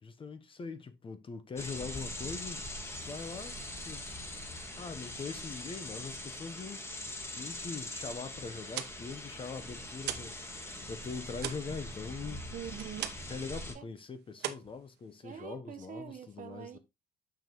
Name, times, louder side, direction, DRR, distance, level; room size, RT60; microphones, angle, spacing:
voice 1, 0.0-2.6 3.1-3.6 3.9-4.1 4.8-10.4 10.9-12.4 13.3-16.8, left 4 dB, 30° left, 0.9 m, -42 dB
sound 1, 1.6-13.7, left 1 dB, 15° left, 1.6 m, -42 dB
sound 2, 8.7-10.4 10.7-13.4 13.7-14.0 14.4-15.5, right 12 dB, 75° right, 0.9 m, -41 dB
voice 2, 12.5-13.1 13.7-13.9 15.2-16.8, right 8 dB, 50° right, 1.1 m, -44 dB
7.1 x 5.9 x 3.0 m
cardioid pair, 110°, 17 cm